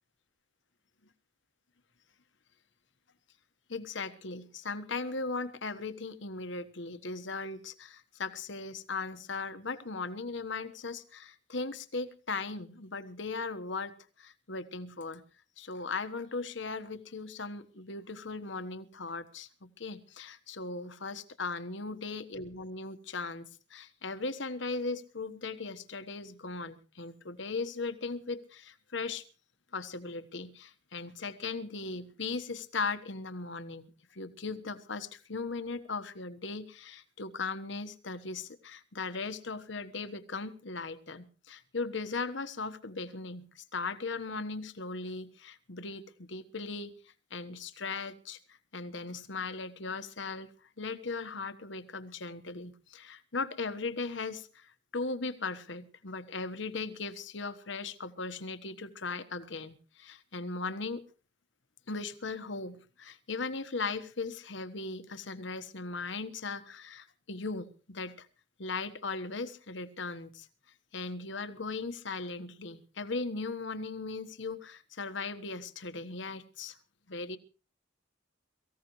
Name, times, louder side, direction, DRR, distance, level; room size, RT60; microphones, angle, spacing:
voice 1, 3.7-15.2 15.6-23.4 23.7-29.2 29.7-46.9 47.3-48.4 48.7-50.5 50.8-61.0 61.9-68.3 68.6-70.5 70.9-76.8 77.1-77.4, left 3 dB, 70° left, 11 dB, 1.3 m, -38 dB
23.5 x 15.5 x 3.1 m, 0.35 s
head